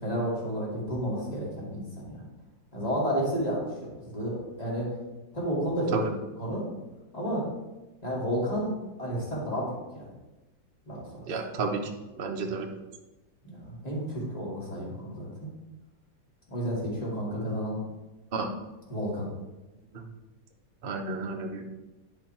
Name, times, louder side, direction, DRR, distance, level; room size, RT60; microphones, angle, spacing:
voice 1, 0.0-2.3 2.7-4.9 5.3-6.0 6.4-6.6 7.1-7.4 8.0-10.0 10.9-11.3 13.4-15.3 16.5-17.8 18.9-19.3, equal, 20° left, -5 dB, 2.7 m, -31 dB
voice 2, 11.3-11.8 12.2-12.7 18.3-18.5 19.9-20.1 20.8-21.7, right 4 dB, 40° right, 2 dB, 0.9 m, -31 dB
11.0 x 5.1 x 4.5 m, 1.1 s
omnidirectional pair, 2.0 m